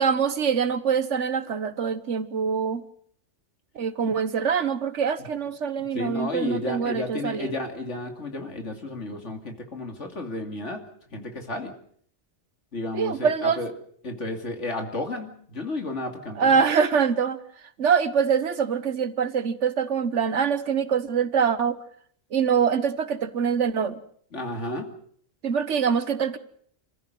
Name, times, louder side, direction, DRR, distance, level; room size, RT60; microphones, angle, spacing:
voice 1, 0.0-2.8 3.7-7.5 12.9-13.6 16.4-17.4 17.8-21.8 22.3-24.0 25.4-26.4, right 6 dB, 80° right, 12 dB, 1.6 m, -24 dB
voice 2, 5.9-10.8 11.1-11.7 12.7-13.7 14.0-16.6 24.3-24.9, left 2 dB, 85° left, 4 dB, 2.9 m, -32 dB
27.0 x 15.0 x 7.8 m, 0.62 s
omnidirectional pair, 1.2 m